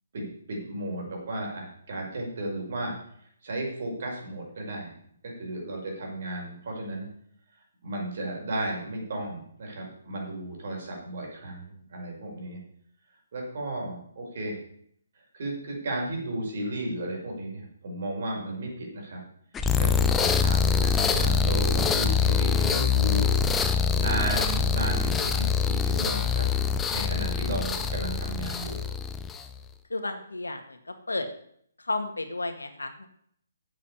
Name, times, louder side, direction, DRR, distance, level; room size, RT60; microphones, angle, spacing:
voice 1, 0.1-2.9 3.4-4.9 5.2-7.1 7.8-12.6 13.3-14.6 15.3-19.2 19.8-23.3 23.9-26.5 26.9-28.8, right 1 dB, 55° right, -1 dB, 5.7 m, -34 dB
sound 1, 19.5-29.5, left 6 dB, 10° left, 0.8 m, -24 dB
voice 2, 29.9-31.3 31.8-33.1, left 2 dB, 90° left, 7 dB, 1.9 m, -32 dB
8.2 x 8.0 x 8.4 m, 0.67 s
hypercardioid pair, 145°, 0 cm